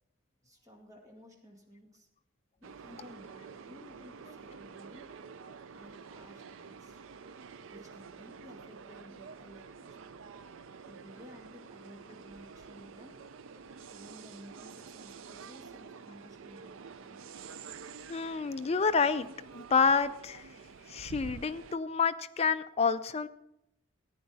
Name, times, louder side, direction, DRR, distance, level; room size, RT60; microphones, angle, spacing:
voice 1, 0.4-2.1 2.6-5.1 5.7-7.0 7.7-10.1 10.8-13.1 13.9-17.2, equal, 15° right, 0 dB, 2.1 m, -54 dB
sound 1, 2.6-21.8, right 5 dB, 70° right, 0.5 m, -49 dB
voice 2, 18.1-19.3 19.5-20.5 20.9-23.3, left 5 dB, 30° left, 11 dB, 0.4 m, -28 dB
14.0 x 9.6 x 4.1 m, 0.82 s
head